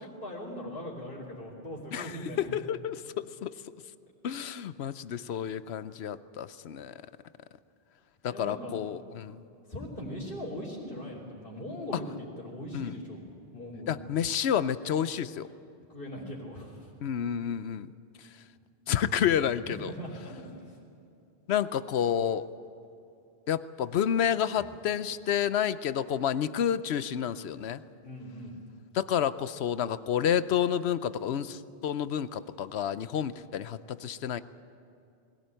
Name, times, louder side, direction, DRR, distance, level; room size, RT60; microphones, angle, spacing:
voice 1, 0.0-2.5 8.3-8.8 9.7-13.3 13.5-14.0 15.9-16.8 19.6-20.8 24.5-24.6 28.0-28.6, equal, 55° left, -7 dB, 3.4 m, -40 dB
voice 2, 1.9-3.5 4.2-7.0 8.2-9.4 12.7-13.0 13.9-15.5 17.0-17.9 18.9-19.9 21.5-22.5 23.5-27.8 28.9-34.4, left 9 dB, 75° left, 14 dB, 0.9 m, -30 dB
21.0 x 17.0 x 9.0 m, 2.6 s
omnidirectional pair, 1.1 m